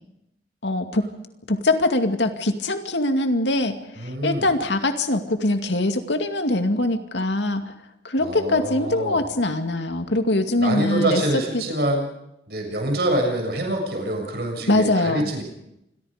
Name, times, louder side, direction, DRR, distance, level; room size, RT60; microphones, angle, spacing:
voice 1, 0.6-1.0 1.5-7.7 8.0-11.2 11.5-11.6 14.7-15.3, left 2 dB, 85° left, 7 dB, 2.3 m, -22 dB
voice 2, 4.0-4.5 8.2-9.3 10.6-12.1 12.5-15.4, right 1 dB, 60° right, 2 dB, 7.1 m, -25 dB
27.5 x 22.5 x 5.2 m, 0.84 s
head